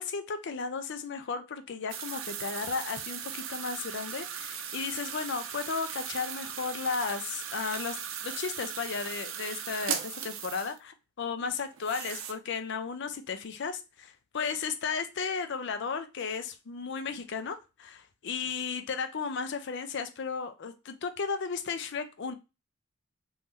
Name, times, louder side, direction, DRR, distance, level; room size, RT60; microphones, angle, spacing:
voice 1, 0.0-22.3, left 5 dB, 60° left, 0.5 m, -34 dB
sound 1, 1.9-10.8 11.7-12.3, right 8 dB, 85° right, 0.5 m, -38 dB
3.1 x 2.6 x 3.6 m
head